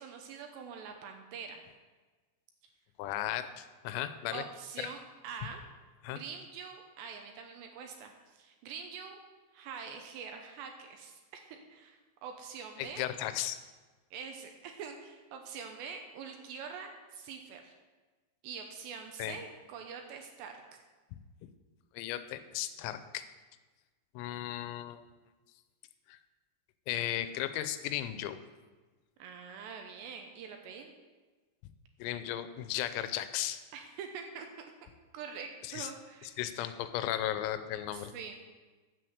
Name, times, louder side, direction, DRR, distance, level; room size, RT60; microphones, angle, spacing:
voice 1, 0.0-1.6 4.3-5.6 6.1-9.2 9.5-13.1 14.1-17.7 18.4-20.8 29.2-30.9 33.7-34.5 35.1-36.6 37.9-38.5, right 6 dB, 80° right, 4 dB, 2.6 m, -45 dB
voice 2, 3.0-4.4 6.0-6.2 12.8-13.6 19.2-19.4 21.9-23.3 24.2-25.0 26.1-26.2 26.9-28.4 32.0-33.6 35.6-35.9 36.2-38.1, left 12 dB, 90° left, 11 dB, 3.4 m, -35 dB
10.0 x 7.7 x 7.9 m, 1.3 s
omnidirectional pair, 5.9 m